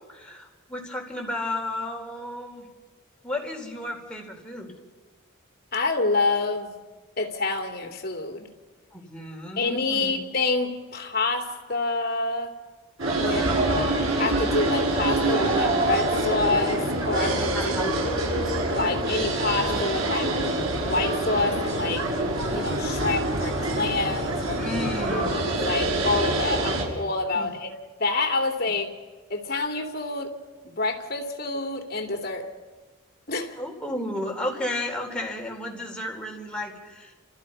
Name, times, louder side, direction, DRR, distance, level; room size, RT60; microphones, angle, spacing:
voice 1, 0.1-2.7 3.2-4.7 8.9-10.3 17.5-18.0 24.6-25.4 27.3-27.5 33.6-37.1, left 1 dB, 5° left, -1 dB, 4.2 m, -33 dB
voice 2, 5.7-6.8 7.2-8.5 9.6-12.5 13.1-18.3 18.8-20.3 20.8-22.1 22.5-24.7 25.1-27.7 28.0-28.9 29.3-30.3 30.6-32.5 33.3-33.6, left 3 dB, 45° left, 3 dB, 3.0 m, -27 dB
sound 1, 13.0-26.8, right 1 dB, 75° right, 6.4 m, -25 dB
29.5 x 28.0 x 5.6 m, 1.3 s
head